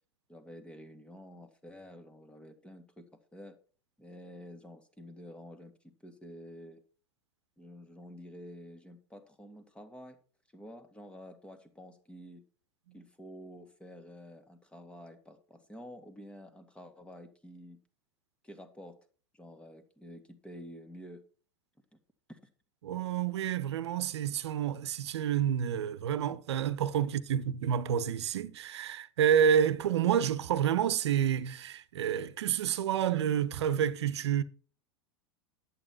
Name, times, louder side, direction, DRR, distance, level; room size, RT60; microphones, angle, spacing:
voice 1, 0.3-3.1 3.3-3.6 4.0-6.8 7.6-10.2 10.5-12.4 12.9-17.8 18.4-19.0 19.3-21.2 22.3-22.4, equal, 5° left, 2.1 m, -49 dB
voice 2, 22.8-34.4, right 9 dB, 70° right, 1.0 m, -29 dB
11.0 x 8.5 x 4.5 m
hypercardioid pair, 90°, 15 cm